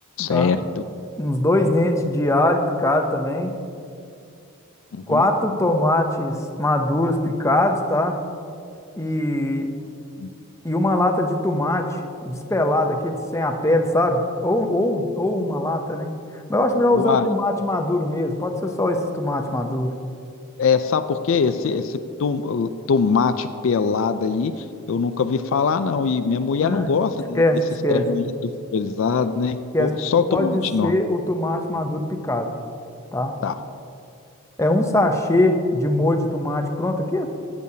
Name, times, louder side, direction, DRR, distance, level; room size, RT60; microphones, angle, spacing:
voice 1, 0.2-0.6 4.9-5.3 10.2-10.3 16.9-17.3 20.6-27.4 27.9-31.0 33.4-33.5, left 5 dB, 60° left, 10 dB, 0.3 m, -22 dB
voice 2, 1.2-3.5 5.1-8.2 9.0-9.7 10.6-12.0 12.2-16.1 16.5-19.9 26.6-26.9 27.3-28.0 29.7-29.9 30.3-32.5 33.1-33.3 34.6-37.3, left 1 dB, 15° left, 5 dB, 0.6 m, -21 dB
15.0 x 8.4 x 2.8 m, 2.4 s
head